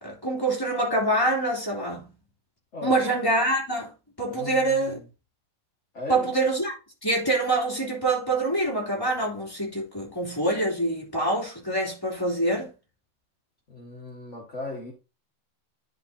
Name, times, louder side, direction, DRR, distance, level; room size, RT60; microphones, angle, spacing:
voice 1, 0.0-2.1 2.8-3.9 4.2-5.0 6.1-6.7 7.0-12.7, right 2 dB, 5° left, 2.1 m, -25 dB
voice 2, 2.7-3.0 4.3-5.1 5.9-6.4 13.7-14.9, left 2 dB, 65° left, 0.7 m, -37 dB
10.5 x 5.1 x 2.7 m
omnidirectional pair, 4.0 m